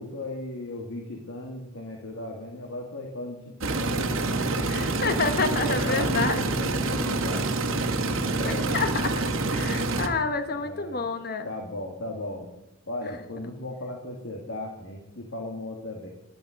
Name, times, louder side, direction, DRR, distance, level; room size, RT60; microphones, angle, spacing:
voice 1, 0.0-4.1 5.6-7.5 8.2-9.0 10.5-11.1 11.4-12.5 12.9-16.1, left 1 dB, 85° left, 1 dB, 2.0 m, -36 dB
sound 1, 3.6-10.1, right 2 dB, 80° right, 1.3 m, -27 dB
voice 2, 4.6-6.4 8.4-9.1 9.5-11.5 13.0-13.1, left 4 dB, 45° left, 9 dB, 1.0 m, -28 dB
11.5 x 11.5 x 6.3 m, 0.90 s
head